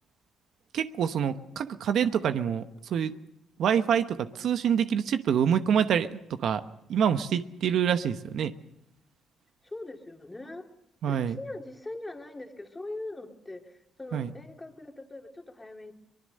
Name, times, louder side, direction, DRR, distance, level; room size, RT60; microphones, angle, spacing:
voice 1, 0.7-3.1 3.6-6.6 6.9-8.5 11.0-11.4 14.1-14.3, right 8 dB, 70° right, 10 dB, 1.0 m, -26 dB
voice 2, 9.6-10.7 11.1-15.9, left 2 dB, 15° left, 3 dB, 2.6 m, -41 dB
24.0 x 20.0 x 6.6 m, 0.81 s
cardioid pair, 90°, 0 cm